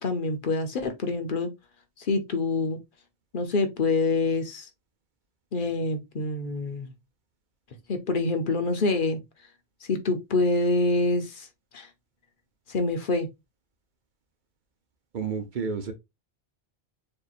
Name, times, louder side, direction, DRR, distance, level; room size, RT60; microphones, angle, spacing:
voice 1, 0.0-1.5 2.0-2.8 3.3-4.7 5.5-6.9 7.9-9.2 9.9-11.5 11.7-11.9 12.7-13.3, left 3 dB, 55° left, 0.9 m, -26 dB
voice 2, 15.1-15.9, right 5 dB, 55° right, 0.8 m, -30 dB
6.6 x 2.8 x 2.4 m
omnidirectional pair, 1.1 m